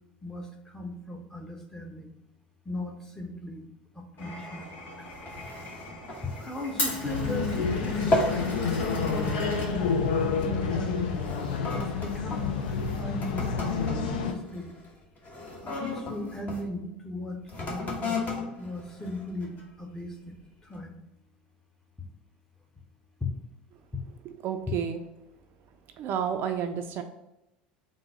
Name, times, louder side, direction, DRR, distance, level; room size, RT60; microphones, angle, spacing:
voice 1, 0.2-2.1 2.6-3.7 3.9-4.7 6.2-9.4 9.7-11.2 11.7-14.7 15.6-18.2 18.6-20.3 20.6-21.0 23.2-23.3 23.9-24.0, left 2 dB, 10° left, 1 dB, 0.9 m, -37 dB
Glass, 4.2-10.4, left 1 dB, 45° left, 1.6 m, -38 dB
sound 1, 5.1-7.7 7.9-8.5 8.9-9.2 9.9-10.1 10.8-16.6 17.4-19.8 20.4-20.5, left 2 dB, 30° left, 1.1 m, -35 dB
sound 2, 7.0-14.3, left 5 dB, 70° left, 0.5 m, -29 dB
voice 2, 24.4-25.0 26.0-27.0, right 8 dB, 45° right, 6 dB, 0.4 m, -30 dB
3.8 x 2.6 x 4.7 m, 0.91 s
figure-of-eight pair, 75°, 5 cm